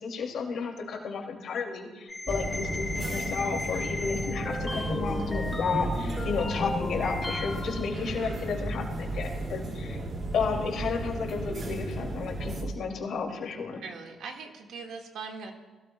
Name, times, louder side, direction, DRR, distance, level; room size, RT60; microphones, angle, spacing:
voice 1, 0.0-10.0 10.3-13.8, left 5 dB, 70° left, 1 dB, 2.4 m, -32 dB
sound 1, 2.1-8.0, left 2 dB, 20° left, 2.8 m, -35 dB
sound 2, 2.3-12.6, right 1 dB, 45° right, 2.3 m, -34 dB
voice 2, 13.8-15.5, right 5 dB, 80° right, 3 dB, 1.7 m, -40 dB
21.5 x 16.5 x 2.2 m, 1.3 s
cardioid pair, 90°, 0 cm